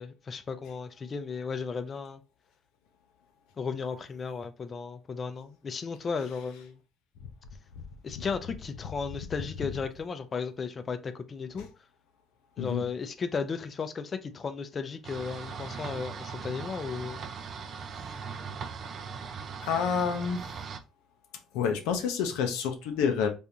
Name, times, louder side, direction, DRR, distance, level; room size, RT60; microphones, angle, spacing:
voice 1, 0.0-2.2 3.6-6.8 8.0-11.7 12.6-17.2, left 5 dB, 35° left, 0.4 m, -35 dB
sound 1, 15.0-20.8, right 5 dB, 45° right, 0.4 m, -39 dB
voice 2, 19.6-20.6 21.5-23.3, left 6 dB, 90° left, 0.5 m, -28 dB
3.5 x 2.5 x 2.7 m
cardioid pair, 110°, 0 cm